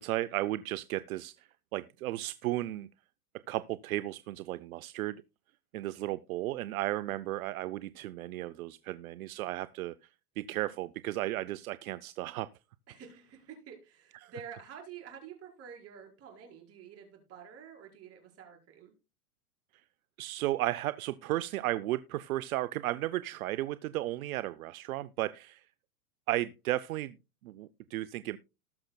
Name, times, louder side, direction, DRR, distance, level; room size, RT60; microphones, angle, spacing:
voice 1, 0.0-1.3 1.7-2.9 3.5-5.2 5.7-9.9 10.4-12.5 14.2-14.3 20.2-25.6 26.3-27.2 27.4-28.4, right 16 dB, 70° right, 0.6 m, -34 dB
voice 2, 12.9-18.9, right 7 dB, 30° right, 4.7 m, -49 dB
19.0 x 6.4 x 2.2 m
hypercardioid pair, 130°, 45 cm